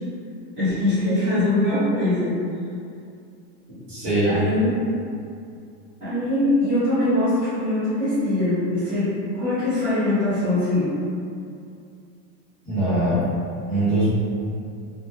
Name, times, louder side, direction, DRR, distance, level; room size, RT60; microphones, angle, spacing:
voice 1, 0.6-2.4 3.7-3.8 4.2-4.8 6.0-10.9, left 1 dB, 10° right, -18 dB, 0.6 m, -22 dB
voice 2, 3.9-4.4 12.6-13.4 13.7-14.1, right 1 dB, 25° right, -12 dB, 1.0 m, -22 dB
2.1 x 2.0 x 3.0 m, 2.4 s
supercardioid pair, 170°, 41 cm